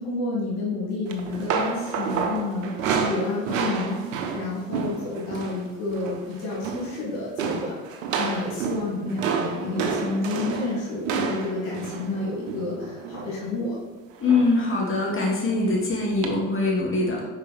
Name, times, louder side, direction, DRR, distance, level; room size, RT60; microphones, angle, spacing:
voice 1, 0.0-4.0 4.3-7.8 8.2-13.8, left 3 dB, 80° left, -5 dB, 2.1 m, -30 dB
sound 1, 1.1-5.6 5.9-6.2 6.5-7.0 7.4-13.4 14.3-14.6 15.0-15.2 16.2-16.3, right 6 dB, 80° right, 0.8 m, -29 dB
voice 2, 14.2-17.3, left 3 dB, 30° left, -3 dB, 1.9 m, -23 dB
5.5 x 4.9 x 4.2 m, 1.2 s
hypercardioid pair, 55°, 39 cm